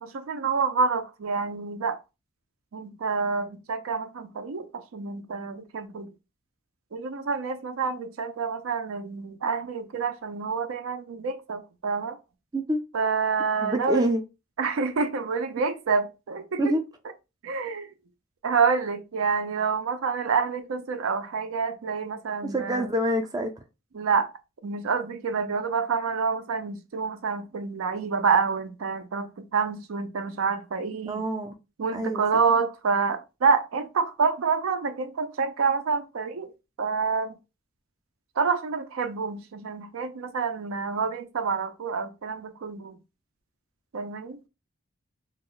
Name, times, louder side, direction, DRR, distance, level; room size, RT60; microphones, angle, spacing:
voice 1, 0.0-2.0 2.7-6.1 6.9-12.2 12.9-14.1 14.6-16.8 17.4-17.9 18.4-22.9 23.9-24.3 24.6-31.2 31.8-36.5 36.8-37.4 38.4-43.0 43.9-44.4, right 5 dB, 90° right, 0.5 m, -27 dB
voice 2, 13.6-14.2 16.6-16.8 22.4-23.5 31.0-31.5 31.9-32.2, right 1 dB, 20° right, 0.3 m, -26 dB
2.3 x 2.0 x 3.7 m
head